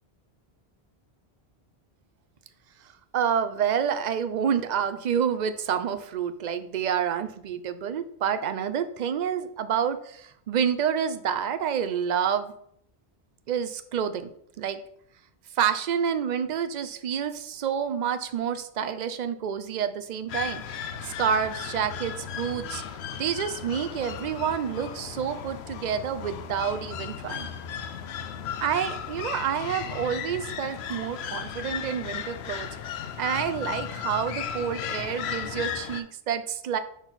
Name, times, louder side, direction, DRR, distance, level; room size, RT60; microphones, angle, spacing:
voice 1, 3.1-12.5 13.5-14.3 14.6-14.8 15.5-22.8 23.2-27.5 28.6-32.7 33.2-36.8, right 8 dB, 55° right, 11 dB, 0.5 m, -28 dB
sound 1, 20.3-36.0, left 8 dB, 75° left, 0.8 m, -35 dB
6.2 x 3.9 x 4.0 m, 0.68 s
omnidirectional pair, 1.1 m